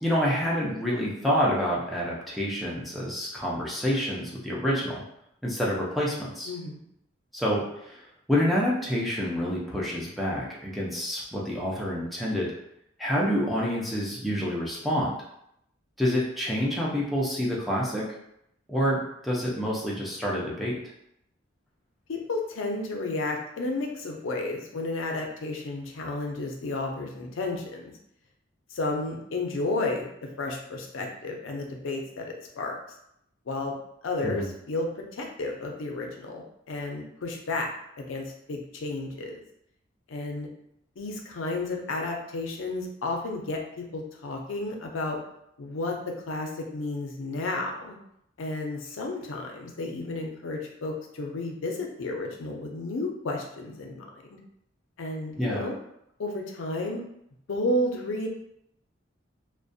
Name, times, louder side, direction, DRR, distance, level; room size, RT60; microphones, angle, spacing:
voice 1, 0.0-5.0 5.4-6.5 7.3-12.5 13.0-15.2 16.0-18.1 18.7-20.8 34.2-34.5 55.4-55.7, equal, ahead, -5 dB, 0.4 m, -28 dB
voice 2, 6.5-6.8 22.1-27.9 28.7-30.1 30.4-32.8 33.5-33.8 34.0-39.4 40.1-40.5 41.0-45.2 45.6-48.0 48.4-54.1 55.0-55.7 56.2-57.0 57.5-58.3, left 2 dB, 80° left, 1 dB, 0.5 m, -32 dB
2.4 x 2.1 x 2.5 m, 0.77 s
head